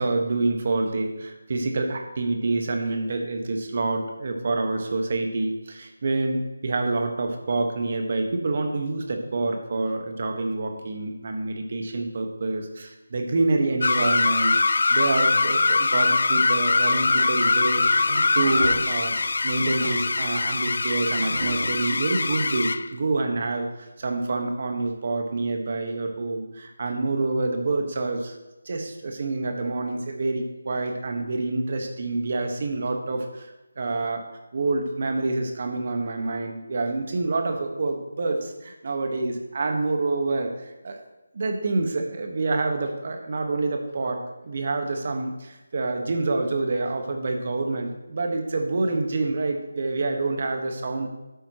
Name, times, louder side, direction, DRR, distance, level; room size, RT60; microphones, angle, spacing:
voice 1, 0.0-18.0 18.3-28.4 28.6-34.3 34.5-41.0 41.3-51.1, right 3 dB, 45° right, 4 dB, 1.4 m, -27 dB
sound 1, 13.8-22.9, left 3 dB, 60° left, 0.3 m, -22 dB
sound 2, 16.8-21.9, right 1 dB, 85° right, 1.6 m, -37 dB
12.5 x 8.8 x 3.1 m, 1.0 s
figure-of-eight pair, 170°, 0 cm